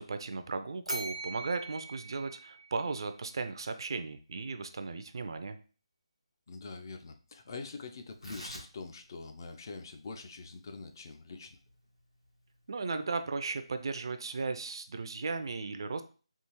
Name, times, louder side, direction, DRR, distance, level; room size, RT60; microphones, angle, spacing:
voice 1, 0.0-5.6 12.7-16.0, right 4 dB, 50° right, 9 dB, 0.3 m, -36 dB
Bell, 0.8-3.1, right 2 dB, 90° right, 0.6 m, -41 dB
voice 2, 6.5-11.6, left 4 dB, 40° left, 6 dB, 0.3 m, -44 dB
Tearing, 8.0-14.8, equal, 85° left, 1.3 m, -53 dB
3.5 x 2.4 x 2.9 m, 0.37 s
figure-of-eight pair, 150°, 3 cm